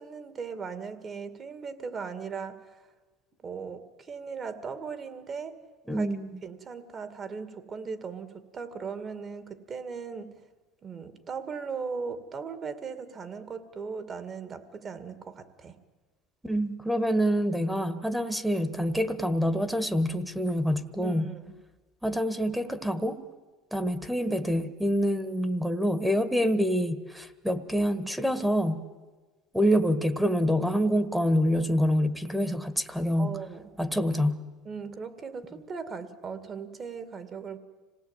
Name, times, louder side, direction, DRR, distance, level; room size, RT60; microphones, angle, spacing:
voice 1, 0.0-2.6 3.4-5.6 5.9-6.1 6.4-10.4 10.8-15.8 21.0-21.5 33.2-33.7 34.6-37.6, right 5 dB, 35° right, 11 dB, 2.2 m, -38 dB
voice 2, 5.9-6.4 16.4-21.2 22.0-23.2 23.7-28.8 29.5-33.3 33.8-34.4, equal, ahead, 8 dB, 1.5 m, -26 dB
26.0 x 18.0 x 9.0 m, 1.3 s
supercardioid pair, 100°, 0 cm